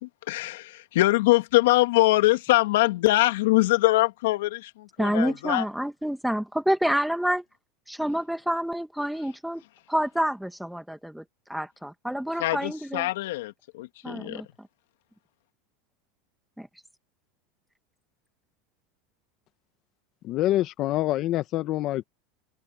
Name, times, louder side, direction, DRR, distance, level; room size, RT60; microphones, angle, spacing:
voice 1, 0.0-5.7 12.4-14.4, left 18 dB, 80° left, 2.3 m, -23 dB
voice 2, 5.0-7.4 7.9-9.6 9.9-11.2 11.5-13.1 14.0-14.5 16.6-16.7, equal, ahead, 1.7 m, -28 dB
voice 3, 20.2-22.0, left 14 dB, 45° left, 1.4 m, -26 dB
open air
supercardioid pair, 135°, 0 cm